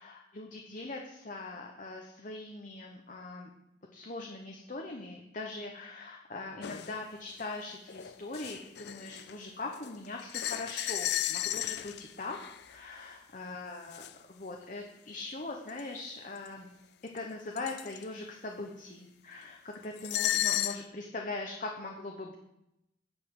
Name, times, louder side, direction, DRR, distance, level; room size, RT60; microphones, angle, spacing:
voice 1, 0.0-3.5 3.9-16.7 17.1-22.4, left 2 dB, 45° left, 1 dB, 1.0 m, -41 dB
sound 1, 6.6-6.9 7.4-7.5 7.9-9.4 9.7-12.7 13.9-14.1 15.7-15.8 16.5-16.6 17.2-17.3 17.6-18.0 20.0-20.8, left 12 dB, 60° left, 0.4 m, -34 dB
9.6 x 5.6 x 8.1 m, 0.84 s
head